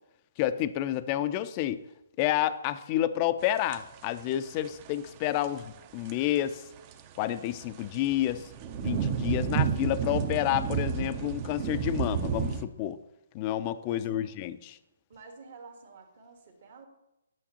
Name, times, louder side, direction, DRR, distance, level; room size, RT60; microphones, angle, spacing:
voice 1, 0.4-1.8 2.2-6.6 7.2-8.5 8.8-13.0 13.3-14.8, left 12 dB, 30° left, 13 dB, 0.4 m, -29 dB
sound 1, 3.4-4.2 4.6-4.9 5.3-6.3 6.8-12.6, right 7 dB, 30° right, 0.5 m, -31 dB
voice 2, 13.9-14.3 15.1-16.9, right 4 dB, 60° right, 4 dB, 1.4 m, -49 dB
9.0 x 5.9 x 2.9 m, 0.91 s
hypercardioid pair, 145°, 0 cm